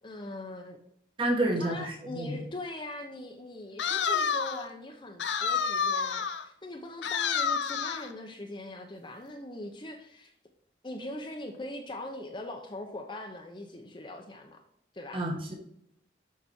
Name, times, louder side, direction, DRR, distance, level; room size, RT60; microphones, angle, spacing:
voice 1, 0.0-0.8 1.6-10.3 10.8-14.6 14.9-15.2, left 1 dB, 25° left, 2 dB, 0.8 m, -41 dB
voice 2, 1.2-2.3 15.1-15.5, right 1 dB, 30° right, 0 dB, 1.5 m, -29 dB
sound 1, 3.8-4.7 5.2-6.4 7.0-8.1, left 6 dB, 80° left, 0.7 m, -29 dB
7.0 x 6.0 x 4.3 m, 0.72 s
head